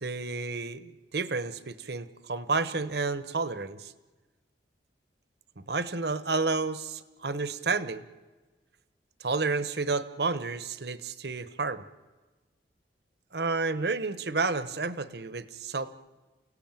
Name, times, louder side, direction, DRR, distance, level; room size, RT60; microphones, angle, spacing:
voice 1, 0.0-3.9 5.6-8.0 9.2-11.8 13.3-15.9, right 3 dB, 65° right, 14 dB, 1.1 m, -31 dB
29.0 x 17.0 x 9.1 m, 1.3 s
head